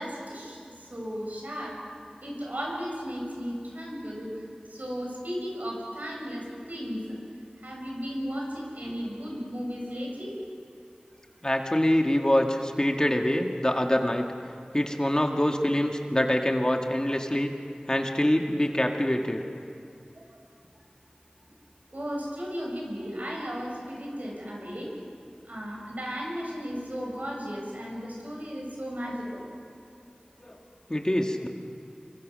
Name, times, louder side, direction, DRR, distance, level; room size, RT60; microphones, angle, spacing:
voice 1, 0.0-1.8 2.2-7.2 7.6-10.4 20.2-20.4 21.9-24.9 25.4-29.5 31.0-31.1, equal, 70° right, -2 dB, 7.1 m, -35 dB
voice 2, 11.4-14.3 14.7-17.5 17.9-19.4 30.4-30.6 30.9-31.5, left 1 dB, 25° left, 3 dB, 2.0 m, -25 dB
26.0 x 23.0 x 6.5 m, 2.5 s
wide cardioid pair, 45°, 3 cm